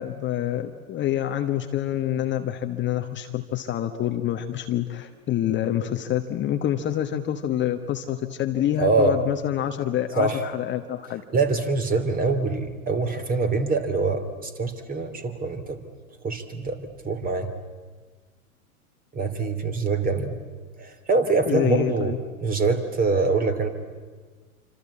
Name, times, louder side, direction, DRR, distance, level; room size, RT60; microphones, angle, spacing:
voice 1, 0.0-11.2 21.5-22.2, left 11 dB, 25° left, 6 dB, 1.3 m, -27 dB
voice 2, 8.8-9.2 10.2-10.4 11.3-15.8 16.2-17.5 19.1-20.4 20.8-23.7, right 3 dB, 20° right, 9 dB, 3.0 m, -24 dB
27.0 x 25.5 x 8.6 m, 1.4 s
hypercardioid pair, 110°, 43 cm